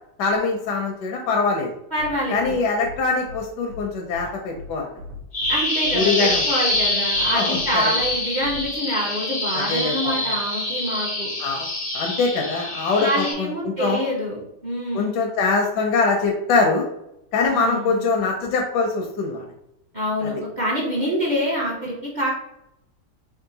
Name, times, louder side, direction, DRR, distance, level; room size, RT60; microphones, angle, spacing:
voice 1, 0.2-1.7 2.3-4.9 5.9-6.5 7.3-7.9 9.5-10.3 11.4-11.7 11.9-14.0 14.9-16.8 17.3-19.5 20.2-20.3, left 4 dB, 80° left, 1 dB, 1.2 m, -23 dB
voice 2, 1.9-2.6 5.5-11.3 13.0-15.2 17.5-18.0 19.9-22.3, equal, 45° right, -4 dB, 0.6 m, -26 dB
sound 1, 2.0-2.1 2.4-2.5 2.8-3.0 3.3-3.4 3.7-3.8 4.1-4.2 4.5-4.7 5.0-5.5 5.8-6.0 6.3-6.4 6.7-6.8 7.1-7.2 7.5-7.7 8.0-8.1 8.4-8.6, left 2 dB, 75° right, 1.4 m, -38 dB
Bird vocalization bird call bird song, 5.3-13.3, left 1 dB, 45° left, 0.5 m, -25 dB
3.7 x 2.4 x 3.8 m, 0.81 s
omnidirectional pair, 1.9 m